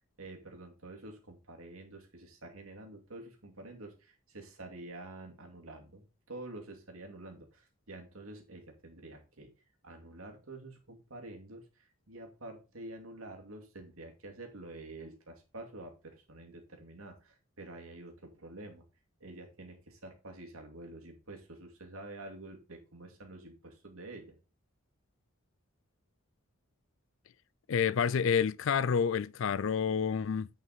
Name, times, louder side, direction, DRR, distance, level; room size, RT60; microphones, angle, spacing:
voice 1, 0.2-9.5 9.8-18.8 19.2-24.4, right 2 dB, 80° right, 2.4 m, -48 dB
voice 2, 27.7-30.5, left 7 dB, 65° left, 0.4 m, -29 dB
9.3 x 5.5 x 4.0 m
head